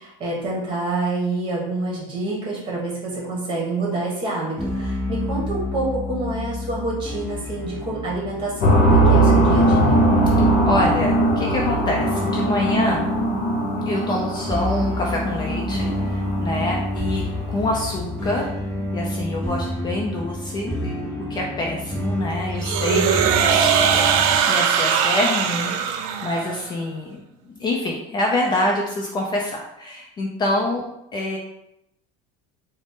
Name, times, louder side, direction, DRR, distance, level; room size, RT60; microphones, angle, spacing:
voice 1, 0.2-10.0 22.9-23.1, right 2 dB, 30° right, -3 dB, 1.3 m, -27 dB
sound 1, 4.6-24.4, left 1 dB, 5° left, 0.9 m, -29 dB
sound 2, 8.6-17.3, right 1 dB, 55° left, 0.9 m, -20 dB
voice 2, 10.3-13.1 13.9-18.5 18.9-27.2 27.4-30.8 31.1-31.4, left 1 dB, 25° left, -1 dB, 0.4 m, -26 dB
sound 3, 22.6-26.7, right 8 dB, 75° right, 0.4 m, -20 dB
3.8 x 2.1 x 3.5 m, 0.81 s
cardioid pair, 150°, 17 cm